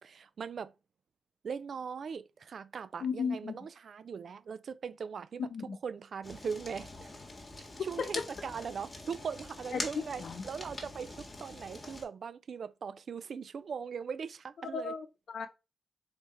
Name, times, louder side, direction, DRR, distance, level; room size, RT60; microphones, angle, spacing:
voice 1, 0.0-0.7 1.4-7.1 7.6-15.0, right 6 dB, 65° right, 0.4 m, -40 dB
voice 2, 3.0-3.5 5.5-5.8 8.0-8.3 9.7-10.5 14.6-15.5, left 6 dB, 70° left, 0.7 m, -36 dB
Fire, 6.2-12.0, left 2 dB, 30° left, 1.7 m, -44 dB
4.0 x 3.4 x 3.2 m
cardioid pair, 70°, 0 cm